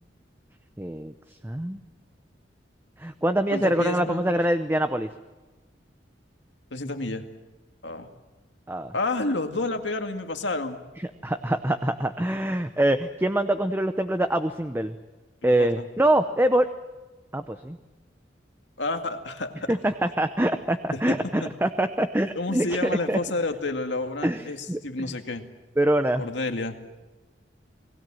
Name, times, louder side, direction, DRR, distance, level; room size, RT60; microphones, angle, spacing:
voice 1, 0.8-1.1 1.4-1.8 3.0-5.1 8.7-8.9 11.2-14.9 15.4-16.7 17.3-17.8 19.7-23.2 24.2-24.8 25.8-26.2, right 1 dB, 10° right, 9 dB, 0.7 m, -24 dB
voice 2, 3.5-4.2 6.7-7.3 7.8-8.1 8.9-10.8 15.4-15.9 18.8-19.7 20.9-21.5 22.3-25.4 26.2-26.8, left 2 dB, 80° left, 6 dB, 2.1 m, -30 dB
29.5 x 19.5 x 7.7 m, 1.2 s
head